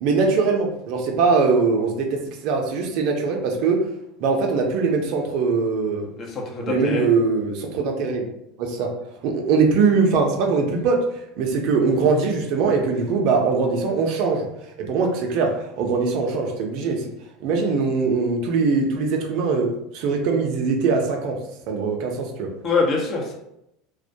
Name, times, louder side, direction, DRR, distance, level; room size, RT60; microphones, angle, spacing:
voice 1, 0.0-3.8 4.2-6.1 6.7-8.3 8.6-8.9 9.2-11.0 11.4-14.5 14.8-17.1 17.4-21.4 21.7-22.5, right 4 dB, 65° right, 2 dB, 0.5 m, -21 dB
voice 2, 6.2-7.0 22.6-23.3, left 4 dB, 45° left, 0 dB, 0.7 m, -24 dB
2.2 x 2.1 x 2.6 m, 0.81 s
supercardioid pair, 105°, 0 cm